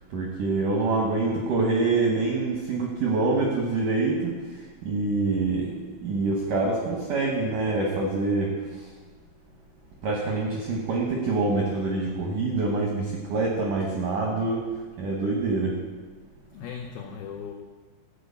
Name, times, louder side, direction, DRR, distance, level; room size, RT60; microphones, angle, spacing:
voice 1, 0.1-5.7 6.0-8.9 10.0-14.6 15.0-15.8, right 3 dB, 80° right, -1 dB, 1.8 m, -26 dB
voice 2, 16.5-17.5, left 7 dB, 90° left, 1 dB, 2.1 m, -38 dB
12.5 x 4.9 x 8.3 m, 1.4 s
omnidirectional pair, 5.5 m